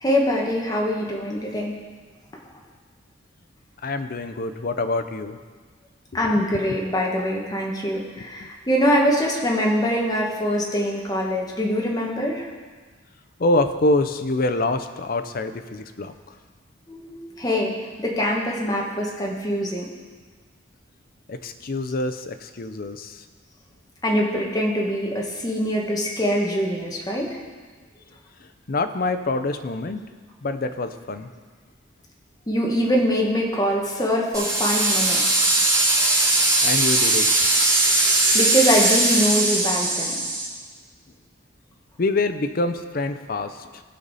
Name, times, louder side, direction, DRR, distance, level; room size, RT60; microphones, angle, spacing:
voice 1, 0.0-1.7 6.1-12.5 16.9-19.9 24.0-27.4 32.5-35.4 38.3-40.2, equal, 20° left, -1 dB, 1.3 m, -23 dB
voice 2, 3.8-5.4 6.2-6.8 8.4-8.5 13.4-16.1 21.3-23.2 28.7-30.0 30.4-31.3 36.6-37.5 42.0-43.8, left 2 dB, 50° left, 9 dB, 0.6 m, -26 dB
sound 1, 34.3-40.4, right 2 dB, 20° right, 2.8 m, -20 dB
16.0 x 5.4 x 4.1 m, 1.4 s
head